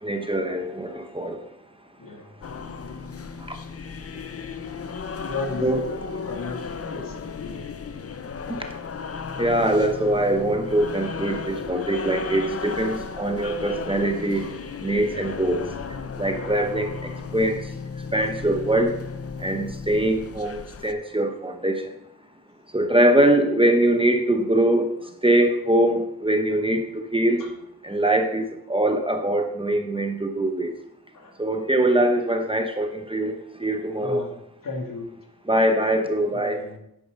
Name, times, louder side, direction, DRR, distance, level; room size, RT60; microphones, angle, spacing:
voice 1, 0.0-1.4 5.6-5.8 9.4-14.5 14.8-15.7 16.2-17.6 18.1-19.0 19.4-21.9 22.7-24.9 25.2-27.5 27.8-30.7 31.4-34.2 35.4-36.6, right 1 dB, 15° right, 4 dB, 1.0 m, -22 dB
sound 1, 2.4-20.9, left 5 dB, 40° left, 0.6 m, -35 dB
voice 2, 5.2-6.0 6.2-7.5 16.3-16.6 27.4-27.5 31.1-31.3 34.0-34.3 34.6-35.1 36.3-36.8, left 3 dB, 60° left, 2 dB, 2.4 m, -34 dB
10.5 x 8.6 x 5.4 m, 0.79 s
wide cardioid pair, 170°, 36 cm